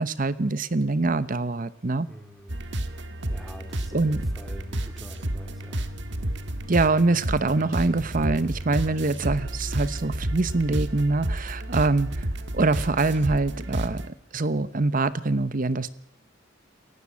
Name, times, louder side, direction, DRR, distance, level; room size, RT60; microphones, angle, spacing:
voice 1, 0.0-2.1 3.9-4.2 6.7-12.3 12.5-15.9, right 3 dB, 45° right, 15 dB, 0.9 m, -24 dB
voice 2, 2.1-5.8, equal, ahead, 4 dB, 3.3 m, -45 dB
sound 1, 2.5-14.1, right 1 dB, 65° right, 1.7 m, -31 dB
28.0 x 15.0 x 8.5 m, 0.72 s
head